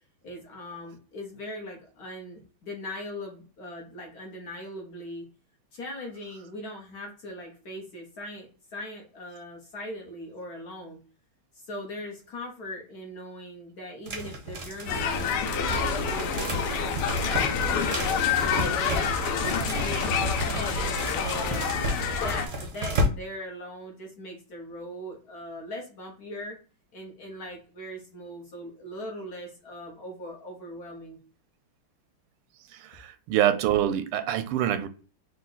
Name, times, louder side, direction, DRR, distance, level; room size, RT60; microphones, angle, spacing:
voice 1, 0.2-5.3 5.7-11.0 11.5-21.8 22.2-26.6 26.9-31.2, equal, 60° left, 1.1 m, -40 dB
sound 1, 14.1-23.1, equal, 55° right, 0.8 m, -32 dB
sound 2, 14.9-22.5, left 5 dB, 85° left, 1.6 m, -27 dB
voice 2, 32.8-34.9, right 11 dB, 90° right, 1.5 m, -25 dB
3.8 x 2.7 x 3.8 m
omnidirectional pair, 2.4 m